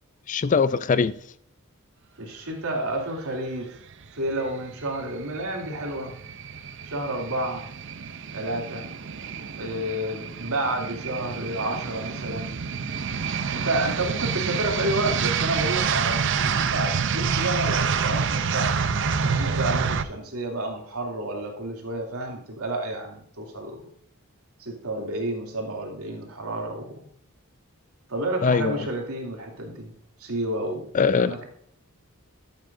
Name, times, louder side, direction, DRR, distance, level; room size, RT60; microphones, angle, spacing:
voice 1, 0.3-1.2 28.4-28.9 30.9-31.3, left 5 dB, 35° left, 0.4 m, -21 dB
voice 2, 2.2-3.7 4.1-6.1 6.9-7.7 8.3-8.9 9.6-12.6 13.5-23.8 24.6-27.0 28.1-29.9 30.2-30.9 31.2-31.5, right 1 dB, 80° right, 2.8 m, -30 dB
sound 1, 4.3-20.0, right 6 dB, 55° right, 0.6 m, -28 dB
12.5 x 8.7 x 2.6 m
head